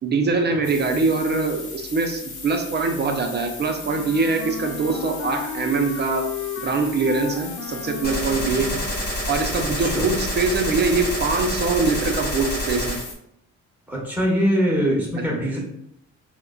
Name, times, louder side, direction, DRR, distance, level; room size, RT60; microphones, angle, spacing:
voice 1, 0.0-6.3 6.6-8.8 9.3-13.0 15.2-15.3, right 4 dB, 35° right, 4 dB, 0.5 m, -23 dB
sound 1, 0.6-13.1, left 3 dB, 75° left, 0.9 m, -38 dB
Wind instrument woodwind instrument, 3.8-9.3, left 7 dB, 55° left, 0.4 m, -34 dB
Gunshot gunfire, 8.0-13.0, equal, 30° left, 1.4 m, -28 dB
voice 2, 13.9-15.6, equal, 5° right, -4 dB, 1.1 m, -22 dB
3.6 x 2.1 x 2.3 m, 0.74 s
cardioid pair, 90°, 30 cm